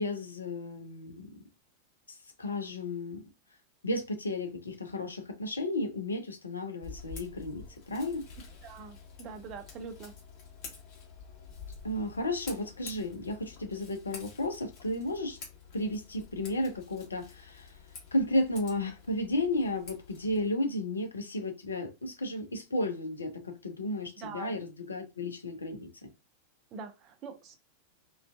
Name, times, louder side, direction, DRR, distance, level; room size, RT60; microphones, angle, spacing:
voice 1, 0.0-1.3 2.1-3.2 3.8-8.3 11.8-15.4 15.7-17.8 18.1-26.1, left 1 dB, 75° left, 0.5 m, -33 dB
Scissors, 6.8-20.5, left 5 dB, 40° left, 1.2 m, -49 dB
voice 2, 8.6-10.2 24.2-24.6 26.7-27.6, right 5 dB, 35° right, 0.5 m, -44 dB
2.5 x 2.3 x 2.2 m
figure-of-eight pair, 90°, 0 cm